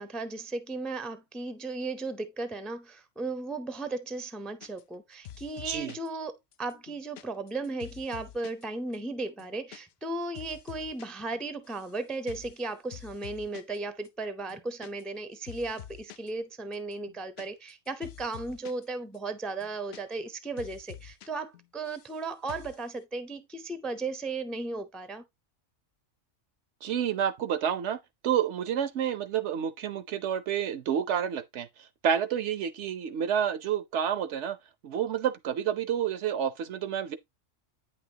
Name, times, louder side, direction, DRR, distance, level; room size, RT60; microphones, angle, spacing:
voice 1, 0.0-25.2, right 3 dB, ahead, 0.5 m, -36 dB
sound 1, 4.6-5.0 5.2-6.1 6.5-8.6 8.9-9.0 9.3-9.8 10.0-11.1 11.3-11.9 12.3-12.6 12.9-13.8 14.0-14.1 14.4-15.2 15.5-16.3 16.7-18.9 19.1-19.2 19.5-20.3 20.6-21.3 21.5-22.2 22.5-22.8, left 11 dB, 65° left, 0.7 m, -47 dB
voice 2, 26.8-28.0 28.2-31.7 32.0-34.6 34.8-37.2, right 9 dB, 70° right, 0.9 m, -29 dB
8.8 x 5.8 x 2.8 m
omnidirectional pair, 1.3 m